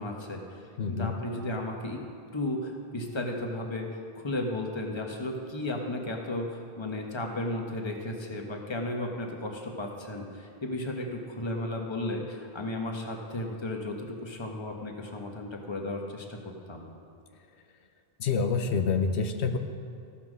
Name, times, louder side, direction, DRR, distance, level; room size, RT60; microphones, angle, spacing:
voice 1, 0.0-2.0 2.3-3.9 4.1-16.4 16.7-16.8, left 1 dB, 25° left, 1 dB, 1.1 m, -34 dB
voice 2, 0.8-1.1 18.2-19.6, left 5 dB, 85° left, 6 dB, 1.0 m, -27 dB
15.0 x 5.9 x 6.2 m, 2.4 s
omnidirectional pair, 1.1 m